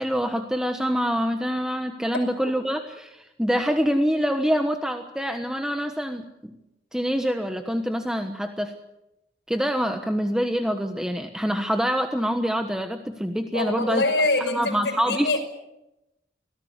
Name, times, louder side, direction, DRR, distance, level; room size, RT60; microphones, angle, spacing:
voice 1, 0.0-6.6 6.9-8.7 9.5-14.0 14.5-15.3, equal, 5° right, 5 dB, 1.2 m, -25 dB
voice 2, 13.5-15.4, left 2 dB, 85° left, 4 dB, 5.6 m, -24 dB
25.0 x 18.0 x 8.3 m, 0.91 s
head